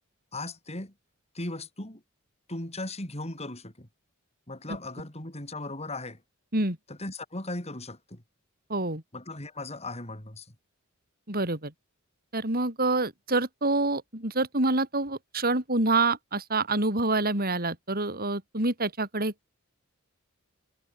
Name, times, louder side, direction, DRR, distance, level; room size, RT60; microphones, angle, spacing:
voice 1, 0.3-0.9 1.3-2.0 2.5-3.9 4.5-6.2 6.9-8.2 9.1-10.5, left 2 dB, 30° left, 5.2 m, -37 dB
voice 2, 8.7-9.0 11.3-11.7 12.3-19.3, right 2 dB, 45° right, 7.1 m, -27 dB
head